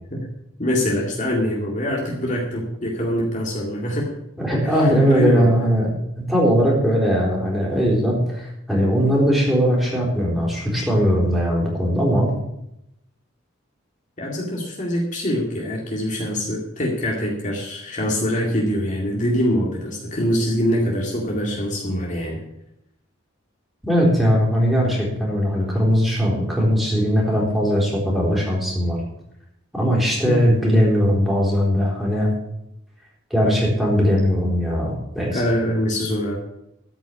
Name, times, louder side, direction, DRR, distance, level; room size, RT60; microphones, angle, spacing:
voice 1, 0.6-4.1 4.6-5.5 14.2-22.4 30.2-30.4 35.3-36.4, equal, 40° left, -2 dB, 2.2 m, -24 dB
voice 2, 4.4-12.3 23.8-29.0 29.7-32.3 33.3-35.4, equal, ahead, -4 dB, 4.0 m, -19 dB
13.5 x 6.0 x 8.5 m, 0.82 s
head